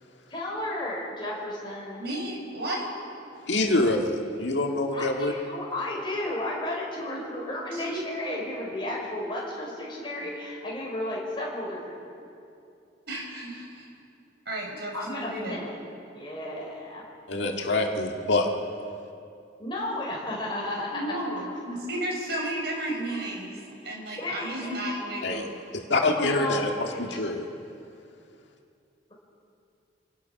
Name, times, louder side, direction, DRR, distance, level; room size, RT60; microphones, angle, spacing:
voice 1, 0.3-2.0 4.9-12.0 14.9-15.8 16.1-17.1 19.6-21.1 23.1-23.3 23.8-25.3 26.1-27.2, left 1 dB, 25° left, -3 dB, 5.1 m, -33 dB
voice 2, 2.0-2.8 7.7-8.0 13.1-13.8 14.5-15.6 20.9-23.6 23.8-25.4, right 1 dB, 60° right, 0 dB, 4.8 m, -33 dB
voice 3, 3.5-5.3 17.3-18.5 25.2-25.5 25.7-27.4, left 2 dB, 75° left, 2 dB, 1.8 m, -25 dB
27.0 x 18.5 x 5.8 m, 2.6 s
head